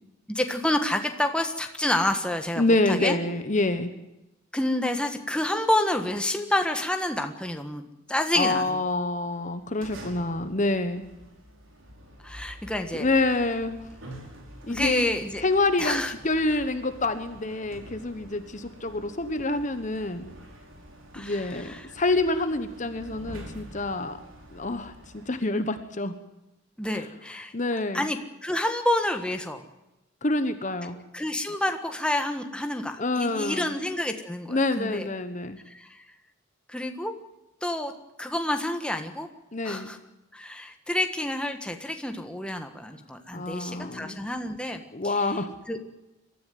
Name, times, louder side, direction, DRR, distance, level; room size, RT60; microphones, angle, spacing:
voice 1, 0.3-3.1 4.5-7.8 8.1-8.8 12.2-13.1 14.7-15.4 15.8-16.1 21.1-21.9 26.8-27.5 27.9-29.6 31.1-35.1 35.7-36.0 36.7-37.1 37.6-37.9 38.2-39.3 39.6-40.0 40.3-45.3 45.7-45.8, left 1 dB, 5° left, 5 dB, 1.5 m, -28 dB
voice 2, 2.6-3.9 8.3-11.0 12.9-13.8 14.7-15.1 15.4-20.3 21.2-24.2 24.5-26.1 27.5-28.1 30.2-31.0 33.0-33.7 34.5-35.6 39.5-39.9 43.3-44.2 44.9-45.5, left 2 dB, 35° left, 10 dB, 1.2 m, -27 dB
sound 1, 9.3-25.4, equal, 75° right, 4.9 m, -46 dB
23.0 x 13.5 x 9.4 m, 0.96 s
head